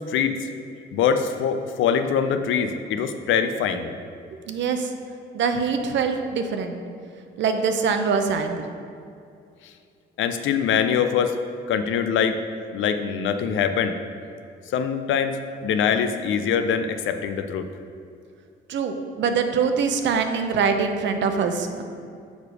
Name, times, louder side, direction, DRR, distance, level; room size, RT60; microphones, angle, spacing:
voice 1, 0.9-3.9 10.2-11.4 11.7-12.4 12.7-13.9 14.7-15.4 15.6-17.7, left 7 dB, 80° left, 8 dB, 0.5 m, -23 dB
voice 2, 4.5-4.9 5.3-6.8 7.4-8.6 18.7-21.8, right 5 dB, 65° right, 6 dB, 0.7 m, -23 dB
6.6 x 4.9 x 4.7 m, 2.4 s
cardioid pair, 90°, 20 cm